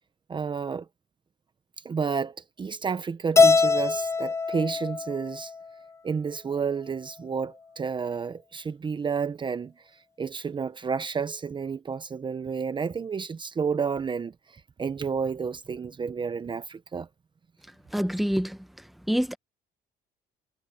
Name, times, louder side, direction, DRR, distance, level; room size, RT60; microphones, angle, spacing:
voice 1, 0.3-0.9 1.8-5.5 6.0-17.1, right 6 dB, 30° right, 0.9 m, -31 dB
Keyboard (musical), 3.4-5.7, left 4 dB, 15° left, 0.5 m, -22 dB
voice 2, 17.9-18.6 19.1-19.4, equal, ahead, 1.2 m, -25 dB
cardioid pair, 110°, 17 cm